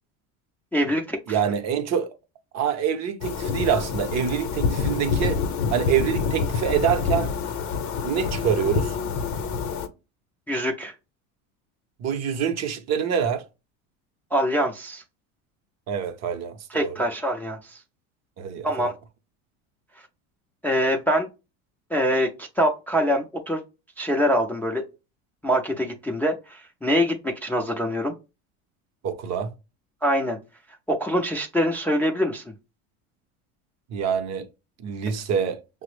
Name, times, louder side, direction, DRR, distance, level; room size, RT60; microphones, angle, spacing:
voice 1, 0.7-1.4 10.5-10.9 14.3-15.0 16.7-17.8 18.6-18.9 20.6-21.3 21.9-23.6 24.0-24.8 25.4-28.1 30.0-30.4 30.9-32.4, equal, 5° left, 0.4 m, -24 dB
voice 2, 1.3-2.1 2.5-5.4 5.7-7.3 8.0-9.0 12.0-13.4 15.9-17.0 18.4-18.9 29.0-29.5 33.9-34.5 34.8-35.6, right 8 dB, 40° right, 0.7 m, -26 dB
sound 1, 3.2-9.9, left 5 dB, 45° left, 0.7 m, -27 dB
5.7 x 2.0 x 3.1 m
supercardioid pair, 110°, 41 cm